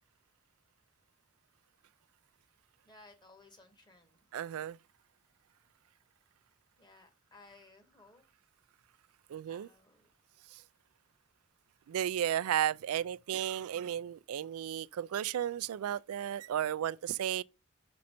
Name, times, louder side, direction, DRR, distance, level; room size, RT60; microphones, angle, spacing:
voice 1, 2.8-4.3 6.8-8.2 9.5-10.1, left 3 dB, 20° left, 1.2 m, -59 dB
voice 2, 4.3-4.8 9.3-9.7 10.5-10.6 11.9-17.4, right 10 dB, 85° right, 0.3 m, -34 dB
6.3 x 5.2 x 4.3 m
head